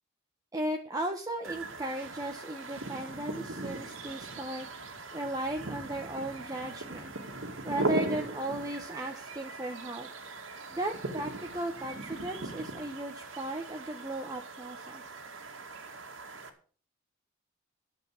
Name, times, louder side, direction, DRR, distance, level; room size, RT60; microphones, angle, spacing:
voice 1, 0.5-4.7 5.1-7.1 7.6-10.1 10.7-15.0, right 1 dB, 20° right, 1 dB, 1.1 m, -36 dB
sound 1, 1.4-16.5, right 2 dB, 75° right, 2.3 m, -39 dB
12.0 x 7.8 x 7.7 m, 0.43 s
head